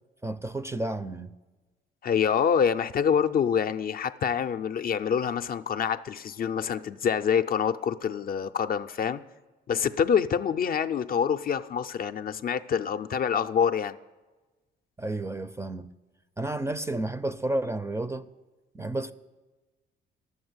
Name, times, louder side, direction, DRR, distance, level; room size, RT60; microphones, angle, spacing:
voice 1, 0.2-1.3 15.0-15.9 16.4-18.3 18.7-19.1, right 2 dB, 15° right, 0.4 m, -31 dB
voice 2, 2.0-9.2 9.7-14.0, left 7 dB, 45° left, 0.4 m, -26 dB
11.0 x 7.4 x 7.9 m
cardioid pair, 90°, 20 cm